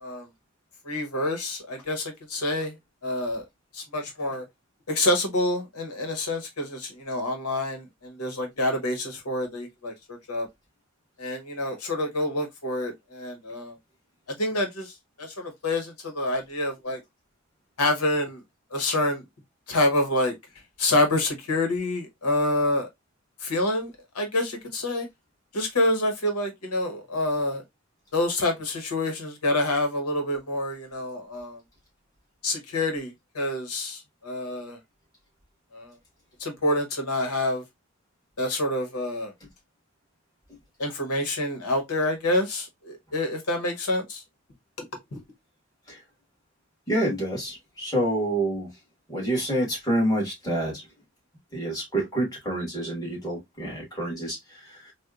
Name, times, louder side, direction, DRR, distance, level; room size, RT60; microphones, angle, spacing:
voice 1, 0.8-2.7 3.0-3.4 3.7-4.4 4.9-10.5 11.2-13.7 14.4-14.9 15.2-17.0 17.8-18.4 18.7-19.2 19.7-20.3 20.8-22.9 23.4-25.1 25.5-27.6 28.1-31.6 32.4-34.8 35.7-35.9 36.4-37.6 38.4-39.3 40.8-44.2 44.8-44.9 45.1-45.2, left 1 dB, 85° left, 1.0 m, -27 dB
voice 2, 46.9-48.7 49.1-50.8 51.5-54.9, right 1 dB, 15° left, 1.5 m, -28 dB
4.2 x 2.2 x 2.3 m
head